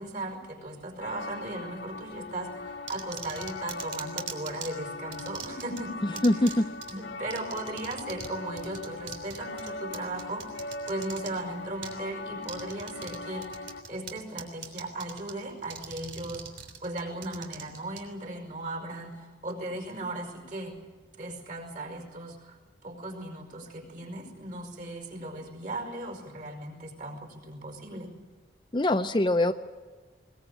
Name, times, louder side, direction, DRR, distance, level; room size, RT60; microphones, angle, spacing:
voice 1, 0.0-6.2 6.9-16.4 16.8-20.8 21.2-28.1, right 2 dB, 45° right, 3 dB, 5.1 m, -37 dB
sound 1, 1.0-13.8, left 3 dB, 75° left, 2.2 m, -40 dB
sound 2, 2.9-4.7 5.1-5.8 6.2-6.5 6.8-6.9 7.3-8.3 8.6-11.3 11.8-11.9 12.4-13.2 13.4-14.1 14.4-15.3 15.6-18.0, right 8 dB, 80° right, 3.5 m, -40 dB
voice 2, 6.2-6.6 28.7-29.5, left 1 dB, 25° left, 8 dB, 0.6 m, -23 dB
21.5 x 20.5 x 8.5 m, 1.4 s
head